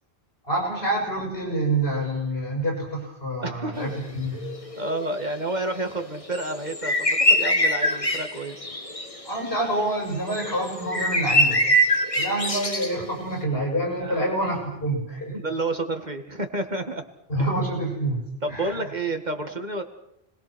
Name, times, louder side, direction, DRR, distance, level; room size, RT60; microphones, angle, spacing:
voice 1, 0.5-4.4 9.2-11.6 12.2-15.4 17.3-18.2 18.5-18.8, right 1 dB, 70° left, -1 dB, 7.6 m, -27 dB
voice 2, 3.4-4.0 4.8-8.7 14.0-14.2 15.3-17.0 18.4-19.8, right 2 dB, 45° right, 6 dB, 2.2 m, -30 dB
sound 1, 3.8-4.0 4.3-10.0 10.3-13.2, equal, 30° left, 2.0 m, -24 dB
30.0 x 21.0 x 6.3 m, 0.80 s
omnidirectional pair, 1.1 m